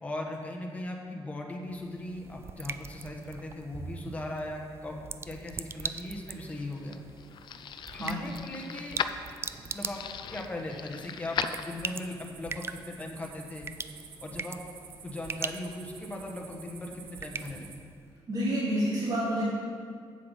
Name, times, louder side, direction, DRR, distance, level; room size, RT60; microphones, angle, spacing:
voice 1, 0.0-5.0 5.2-7.0 7.9-9.0 9.7-10.0 10.3-13.7 14.2-14.6 15.0-17.8, left 1 dB, 15° left, 0 dB, 1.2 m, -38 dB
sound 1, 1.7-18.1, right 5 dB, 25° right, 0.3 m, -42 dB
sound 2, 6.2-12.2, left 7 dB, 55° left, 0.4 m, -38 dB
sound 3, 11.4-17.8, right 6 dB, 65° right, 0.9 m, -50 dB
voice 2, 18.3-19.4, equal, 45° right, -7 dB, 2.4 m, -28 dB
7.8 x 7.7 x 5.4 m, 2.1 s
cardioid pair, 125°, 9 cm